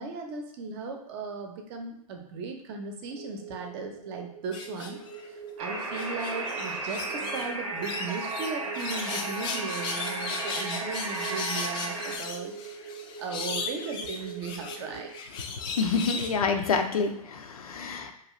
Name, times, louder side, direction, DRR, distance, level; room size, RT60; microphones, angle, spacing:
voice 1, 0.0-5.0 5.6-12.5 13.2-15.1, right 4 dB, 45° right, 3 dB, 0.6 m, -37 dB
sound 1, 3.1-15.1, right 6 dB, 15° right, 0.8 m, -43 dB
sound 2, 4.5-5.3 5.7-7.5 7.8-16.3, left 5 dB, 25° left, 0.3 m, -37 dB
sound 3, 5.6-12.2, right 2 dB, 80° right, 0.7 m, -34 dB
voice 2, 15.6-18.1, left 5 dB, 85° left, 6 dB, 0.5 m, -28 dB
2.7 x 2.3 x 3.0 m, 0.74 s
hypercardioid pair, 105°, 18 cm